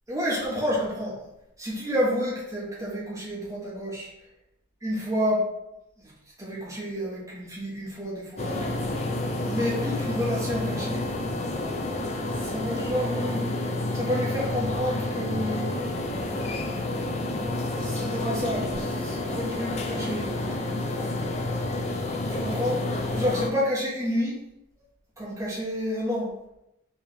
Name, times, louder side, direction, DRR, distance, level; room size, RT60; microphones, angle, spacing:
voice 1, 0.1-1.2 1.6-4.1 4.8-5.4 6.4-8.8 9.5-11.0 12.4-13.5 13.9-15.7 17.8-20.6 22.3-24.4 25.2-26.3, equal, 15° right, -7 dB, 1.4 m, -29 dB
sound 1, 8.4-23.5, left 2 dB, 30° left, 0.4 m, -29 dB
4.6 x 3.4 x 3.3 m, 0.85 s
head